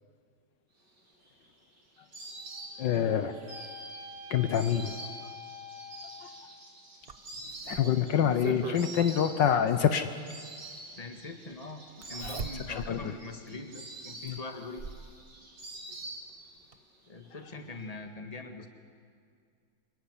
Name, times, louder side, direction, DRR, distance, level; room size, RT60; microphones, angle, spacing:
Insect, 1.0-16.7 16.9-17.8, right 2 dB, 60° right, 4.9 m, -46 dB
sound 1, 2.3-6.6, left 3 dB, 20° right, 5.8 m, -48 dB
voice 1, 2.8-3.4 4.3-5.0 6.2-6.3 7.7-10.1 12.7-13.1 14.2-14.4, left 8 dB, 70° left, 9 dB, 1.6 m, -26 dB
Zipper (clothing), 7.1-8.9 10.3-10.4 12.0-13.0 13.5-13.6 14.3-15.1 16.3-16.4 16.7-16.8, right 5 dB, 35° right, 1.1 m, -40 dB
voice 2, 7.4-7.8 10.9-11.8 12.1-14.8 17.1-18.7, left 3 dB, 20° left, 5 dB, 2.0 m, -43 dB
26.0 x 22.0 x 10.0 m, 2.2 s
omnidirectional pair, 2.1 m